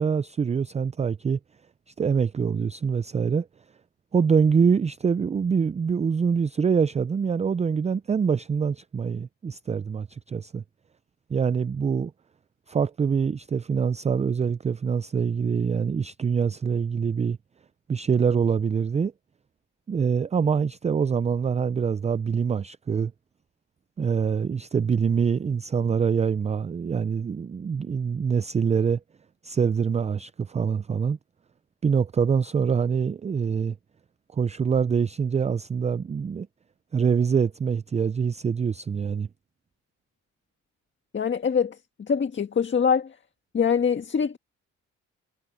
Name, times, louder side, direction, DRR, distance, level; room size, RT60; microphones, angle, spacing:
voice 1, 0.0-1.4 2.0-3.5 4.1-10.6 11.3-12.1 12.7-17.4 17.9-19.1 19.9-23.1 24.0-29.0 29.4-31.2 31.8-33.8 34.3-36.5 36.9-39.3, right 6 dB, 25° right, 0.4 m, -25 dB
voice 2, 41.1-41.8 42.1-43.1 43.5-44.4, left 6 dB, 40° left, 1.6 m, -23 dB
cardioid pair, 90°, 30 cm